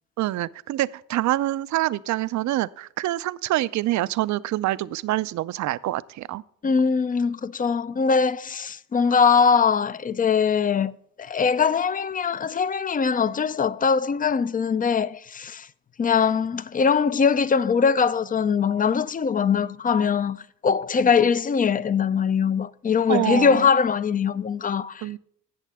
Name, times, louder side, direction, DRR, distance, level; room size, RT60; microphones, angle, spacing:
voice 1, 0.2-6.4 23.1-23.7 25.0-25.2, right 15 dB, 70° right, 0.5 m, -26 dB
voice 2, 6.6-10.9 11.2-15.7 16.0-25.1, left 6 dB, 30° left, 0.4 m, -22 dB
17.0 x 6.5 x 3.5 m
cardioid pair, 90°, 30 cm